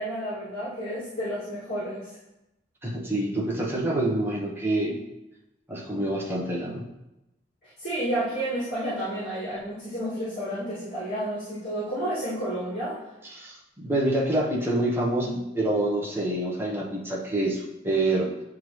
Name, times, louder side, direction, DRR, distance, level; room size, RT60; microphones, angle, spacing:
voice 1, 0.0-2.1 7.8-13.0, right 1 dB, 55° left, -12 dB, 2.3 m, -31 dB
voice 2, 2.8-5.0 5.7-6.9 13.2-18.3, right 1 dB, 10° right, -4 dB, 1.0 m, -27 dB
9.2 x 3.6 x 3.2 m, 0.92 s
head